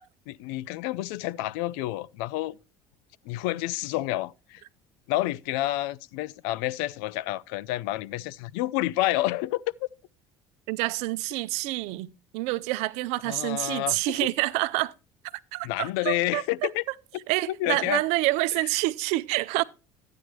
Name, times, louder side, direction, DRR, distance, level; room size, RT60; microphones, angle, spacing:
voice 1, 0.3-2.6 3.3-4.6 5.1-9.6 13.3-14.2 15.6-16.8 17.5-18.0, left 16 dB, 75° left, 0.4 m, -29 dB
voice 2, 10.7-12.1 12.3-14.9 15.5-16.4 17.3-19.6, right 19 dB, 70° right, 0.5 m, -27 dB
11.5 x 9.3 x 3.1 m
hypercardioid pair, 75°, 12 cm